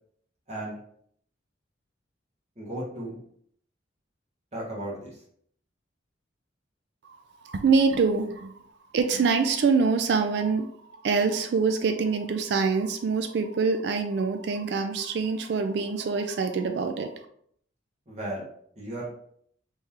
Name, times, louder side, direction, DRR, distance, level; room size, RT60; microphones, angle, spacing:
voice 1, 2.6-3.2 4.5-5.2 18.1-18.4 18.7-19.1, right 1 dB, 35° right, -5 dB, 1.4 m, -35 dB
voice 2, 7.0-8.7 8.9-17.3, right 4 dB, 60° right, 7 dB, 0.3 m, -25 dB
3.6 x 3.2 x 2.9 m, 0.65 s
head